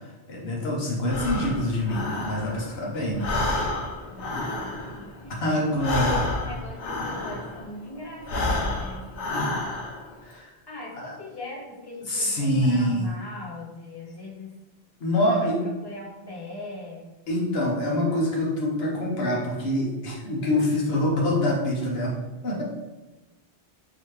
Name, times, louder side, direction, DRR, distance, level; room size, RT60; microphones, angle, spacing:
voice 1, 0.3-3.3 5.4-6.1 10.2-10.5 11.0-11.1 12.1-13.1 15.0-15.6 17.3-22.1 22.4-22.6, left 1 dB, 65° left, -2 dB, 1.2 m, -25 dB
Breathing, 1.0-2.8 3.1-7.7 8.2-10.1, left 2 dB, 90° left, 1.0 m, -29 dB
voice 2, 4.1-5.4 5.9-9.4 10.7-14.5 15.2-15.5 15.8-17.1, left 2 dB, 25° left, -4 dB, 0.9 m, -40 dB
4.0 x 2.9 x 3.2 m, 1.1 s
omnidirectional pair, 1.1 m